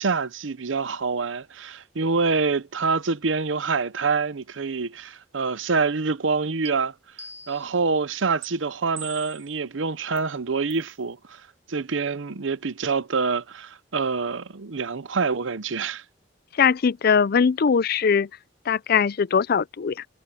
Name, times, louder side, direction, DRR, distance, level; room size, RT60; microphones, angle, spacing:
voice 1, 0.0-6.9 7.5-11.4 11.7-16.0, right 4 dB, 80° right, 0.8 m, -26 dB
sound 1, 6.7-6.8 7.2-7.8 8.4-8.5 9.0-9.5 10.2-10.3 10.7-10.9, right 6 dB, 55° right, 3.6 m, -40 dB
voice 2, 16.6-18.3 18.7-20.1, left 6 dB, 55° left, 0.4 m, -21 dB
head